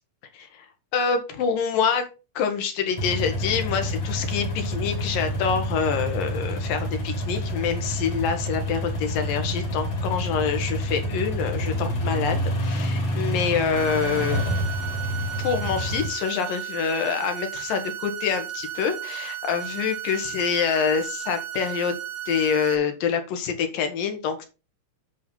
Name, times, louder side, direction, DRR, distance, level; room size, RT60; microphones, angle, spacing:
voice 1, 0.3-0.7 0.9-2.1 2.4-14.6 15.4-22.0 22.3-24.5, left 6 dB, 85° left, 6 dB, 3.3 m, -26 dB
sound 1, 3.0-16.1, equal, 55° left, 4.9 m, -28 dB
sound 2, 13.8-22.8, right 11 dB, 60° right, 2.2 m, -34 dB
11.0 x 4.6 x 5.6 m, 0.32 s
omnidirectional pair, 3.9 m